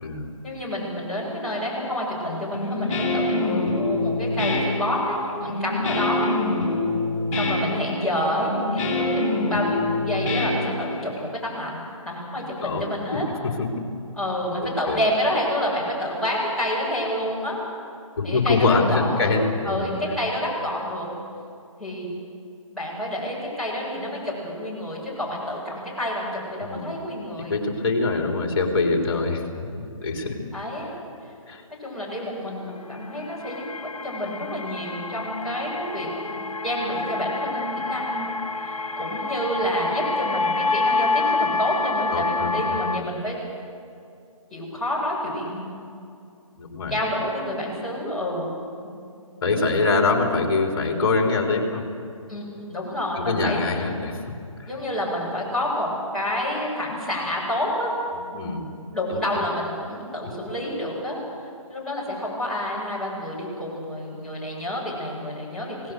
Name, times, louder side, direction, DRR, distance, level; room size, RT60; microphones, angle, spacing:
voice 1, 0.4-6.3 7.3-11.8 12.0-13.3 14.1-17.6 18.2-19.3 19.6-21.1 21.8-22.1 22.7-27.6 30.5-30.9 31.8-33.6 34.0-36.1 36.6-38.3 38.6-43.3 44.5-45.7 46.9-48.6 52.3-53.6 54.7-57.9 58.9-61.2 61.7-65.9, left 1 dB, ahead, -10 dB, 7.4 m, -28 dB
Guitar, 2.5-11.2, left 2 dB, 25° left, 7.6 m, -25 dB
voice 2, 14.6-15.0 18.2-19.9 26.6-26.9 27.5-29.4 30.0-30.4 31.5-31.6 42.1-43.0 46.6-47.0 49.4-51.8 53.2-54.2 54.6-54.7 58.3-58.7 59.1-59.5, left 3 dB, 45° left, 2 dB, 3.7 m, -24 dB
sound 1, 32.8-43.0, left 3 dB, 85° left, 0.9 m, -27 dB
28.0 x 18.5 x 6.7 m, 2.5 s
figure-of-eight pair, 145°, 18 cm